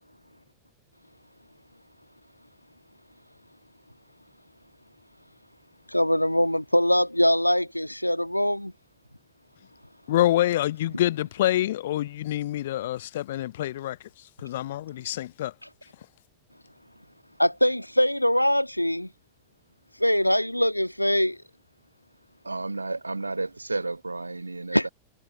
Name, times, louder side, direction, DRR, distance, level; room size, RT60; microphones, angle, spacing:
voice 1, 5.9-8.7 17.4-19.1 20.0-21.4 24.7-24.9, left 1 dB, 90° left, 1.5 m, -22 dB
voice 2, 10.1-14.0 14.4-15.5, left 13 dB, 55° left, 0.7 m, -26 dB
voice 3, 22.4-24.9, right 3 dB, 80° right, 1.1 m, -32 dB
figure-of-eight pair, 90°, 0 cm